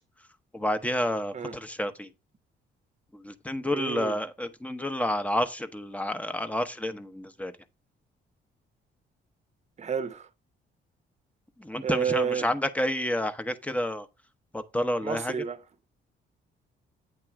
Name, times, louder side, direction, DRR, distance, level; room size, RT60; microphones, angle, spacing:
voice 1, 0.5-2.1 3.2-7.5 11.6-14.1 14.5-15.3, left 1 dB, 5° left, 0.9 m, -29 dB
voice 2, 3.7-4.2 9.8-10.3 11.8-12.5 15.0-15.6, right 7 dB, 35° right, 0.8 m, -30 dB
8.9 x 3.0 x 5.8 m
cardioid pair, 90°, 20 cm